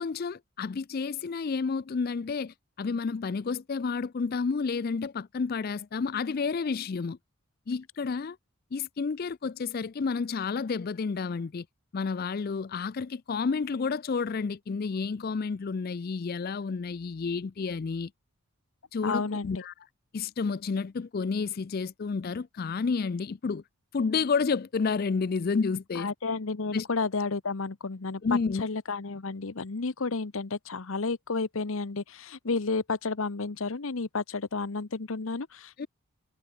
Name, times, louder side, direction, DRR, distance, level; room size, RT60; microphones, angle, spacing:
voice 1, 0.0-7.2 7.7-8.4 8.7-11.7 11.9-18.1 18.9-19.7 20.1-23.6 23.9-26.1 26.7-26.9 28.2-28.6 35.8-35.9, left 5 dB, 40° left, 0.4 m, -30 dB
voice 2, 19.0-19.6 25.9-35.9, left 4 dB, 65° left, 0.9 m, -31 dB
head